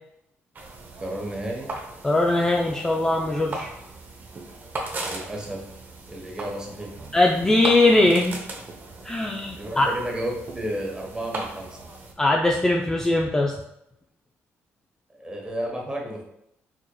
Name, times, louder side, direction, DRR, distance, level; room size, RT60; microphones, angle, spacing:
sound 1, 0.5-12.1, right 2 dB, 40° right, 0.6 m, -38 dB
voice 1, 1.0-1.7 5.0-5.6 6.1-7.1 9.2-11.9 15.1-16.2, right 1 dB, 15° right, -1 dB, 1.0 m, -32 dB
voice 2, 2.0-3.7 7.1-8.4 9.0-9.9 12.2-13.5, left 2 dB, 10° left, 0 dB, 0.3 m, -20 dB
4.7 x 2.8 x 2.2 m, 0.80 s
cardioid pair, 105°, 5 cm